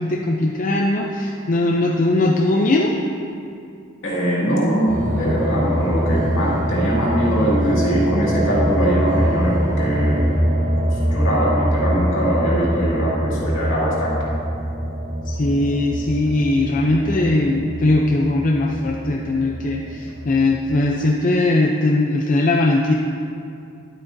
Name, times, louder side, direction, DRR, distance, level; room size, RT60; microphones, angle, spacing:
voice 1, 0.0-2.9 15.3-22.9, left 2 dB, 40° left, -1 dB, 0.5 m, -19 dB
voice 2, 4.0-10.2 11.1-14.3, equal, 70° left, -6 dB, 2.2 m, -21 dB
sound 1, 4.9-20.9, equal, 40° right, 1.0 m, -24 dB
11.0 x 8.4 x 2.7 m, 2.6 s
head